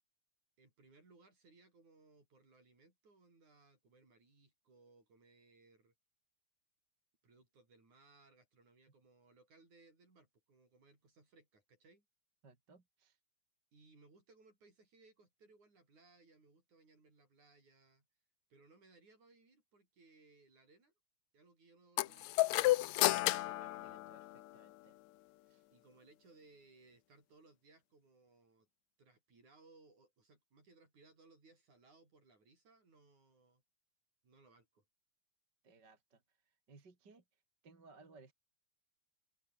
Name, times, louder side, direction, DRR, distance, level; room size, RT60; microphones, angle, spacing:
voice 1, 0.6-5.9 7.2-12.1 13.7-18.1 18.5-20.9 21.3-22.8 23.4-24.1 25.7-28.7 29.0-33.6 34.2-34.9, right 3 dB, 55° right, 9.4 m, -66 dB
voice 2, 12.4-13.2 23.4-25.0 25.5-25.7 35.6-38.3, right 4 dB, 30° right, 3.6 m, -63 dB
sound 1, 22.0-24.7, left 17 dB, 85° left, 1.6 m, -32 dB
open air
omnidirectional pair, 3.9 m